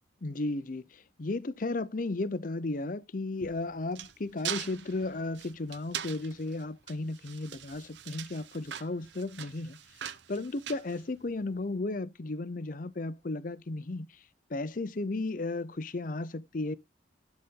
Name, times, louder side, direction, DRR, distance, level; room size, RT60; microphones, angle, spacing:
voice 1, 0.2-9.8 10.3-14.1 14.5-16.8, left 2 dB, 45° left, 0.6 m, -34 dB
sound 1, 3.4-11.6, right 10 dB, 80° right, 0.8 m, -42 dB
11.5 x 4.1 x 3.7 m
head